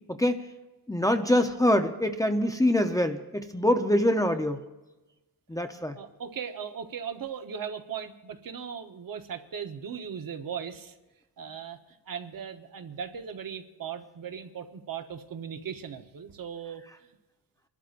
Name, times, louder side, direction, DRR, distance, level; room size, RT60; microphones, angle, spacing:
voice 1, 0.1-0.4 0.9-4.6 5.5-6.0, left 1 dB, 10° left, 5 dB, 0.7 m, -24 dB
voice 2, 6.0-11.0 11.4-11.8 12.1-16.9, right 7 dB, 55° right, 7 dB, 1.1 m, -38 dB
28.0 x 12.0 x 2.6 m, 1.1 s
cardioid pair, 105°, 40 cm